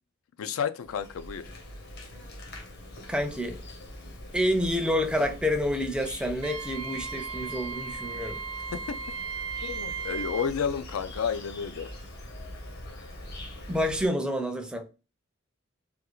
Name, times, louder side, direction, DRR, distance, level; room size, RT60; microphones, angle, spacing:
voice 1, 0.4-1.5 8.7-9.0 9.6-11.9, left 7 dB, 80° left, 0.4 m, -31 dB
Insect, 0.8-14.1, left 1 dB, 50° left, 0.9 m, -43 dB
voice 2, 3.1-3.5 4.3-8.4 13.7-14.9, equal, 5° right, 0.4 m, -28 dB
Wind instrument woodwind instrument, 6.4-10.5, right 5 dB, 80° right, 0.4 m, -36 dB
3.5 x 2.3 x 3.0 m
head